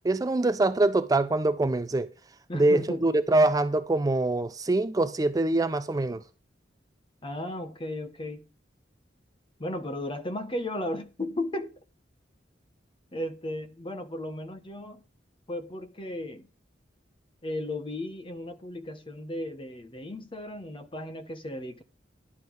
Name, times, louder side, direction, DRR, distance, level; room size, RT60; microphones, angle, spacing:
voice 1, 0.0-2.1 2.5-6.2, right 2 dB, 20° right, 0.4 m, -24 dB
voice 2, 2.5-3.2 7.2-8.5 9.6-11.7 13.1-15.0 15.5-16.5 17.4-21.8, left 1 dB, 30° left, 1.0 m, -35 dB
11.0 x 7.2 x 4.7 m
head